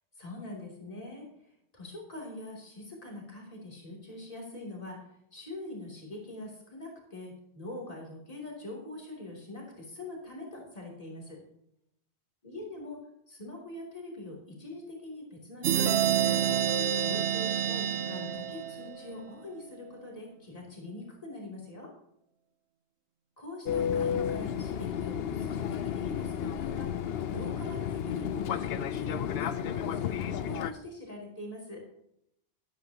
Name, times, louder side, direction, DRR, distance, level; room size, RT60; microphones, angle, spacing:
voice 1, 0.2-5.0 5.3-11.4 12.4-13.0 13.3-16.6 16.9-21.9 23.4-31.8, left 2 dB, 35° left, -2 dB, 3.2 m, -43 dB
sound 1, 15.6-19.2, right 9 dB, 90° right, 0.9 m, -28 dB
Fixed-wing aircraft airplane, 23.7-30.7, left 8 dB, 70° left, 0.8 m, -32 dB
13.0 x 11.5 x 2.9 m, 0.74 s
omnidirectional pair, 1.1 m